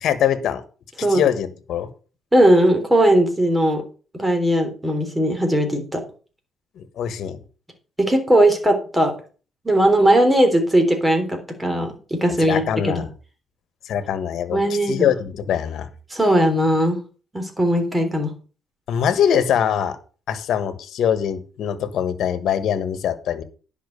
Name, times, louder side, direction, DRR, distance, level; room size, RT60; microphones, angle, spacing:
voice 1, 0.0-0.6 1.1-1.9 6.8-7.4 12.4-13.1 13.9-14.6 14.9-15.9 18.9-20.0 20.3-23.4, left 9 dB, 75° left, 13 dB, 1.4 m, -22 dB
voice 2, 2.3-3.8 4.1-6.0 8.0-9.1 9.7-13.0 14.5-15.1 16.1-17.0 17.3-18.3, right 1 dB, 15° right, 5 dB, 3.6 m, -18 dB
10.5 x 5.8 x 6.6 m, 0.37 s
cardioid pair, 90°, 0 cm